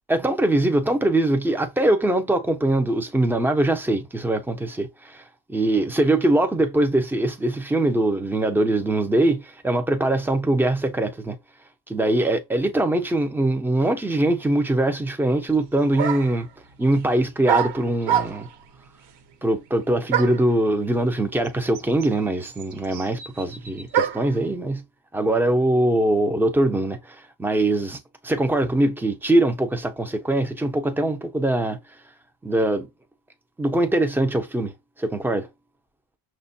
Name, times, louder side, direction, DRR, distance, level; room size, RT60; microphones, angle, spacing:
voice 1, 0.1-5.2 5.5-11.4 11.9-16.5 16.8-18.5 19.4-24.8 25.1-31.8 32.4-32.9 33.6-35.5, right 1 dB, 5° right, 0.4 m, -22 dB
sound 1, 15.5-15.6 16.0-16.4 17.5-18.6 20.1-20.5 21.4-21.5 21.7-24.4, right 9 dB, 75° right, 0.8 m, -26 dB
6.0 x 2.2 x 2.6 m
cardioid pair, 140°, 41 cm